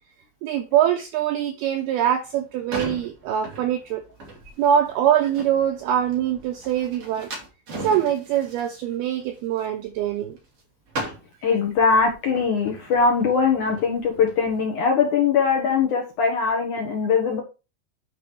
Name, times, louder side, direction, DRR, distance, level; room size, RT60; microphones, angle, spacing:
voice 1, 0.4-4.0 4.6-7.3 7.8-10.4, right 10 dB, 85° right, 2.2 m, -23 dB
sound 1, 2.2-10.6 10.9-14.5, right 2 dB, 35° right, 3.5 m, -39 dB
voice 2, 11.4-17.4, left 5 dB, 60° left, 2.1 m, -21 dB
9.7 x 5.1 x 4.5 m
omnidirectional pair, 5.4 m